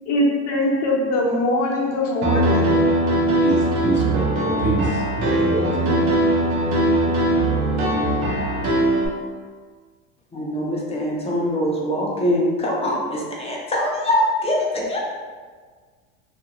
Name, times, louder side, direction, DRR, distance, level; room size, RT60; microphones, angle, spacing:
voice 1, 0.1-3.2, left 1 dB, 55° left, -1 dB, 0.7 m, -22 dB
Piano, 2.2-9.1, right 1 dB, 85° right, 0.9 m, -20 dB
voice 2, 3.4-5.9, right 2 dB, 35° right, -2 dB, 0.6 m, -26 dB
voice 3, 10.3-15.0, equal, 20° left, -3 dB, 0.5 m, -23 dB
2.7 x 2.4 x 2.9 m, 1.6 s
supercardioid pair, 105°, 33 cm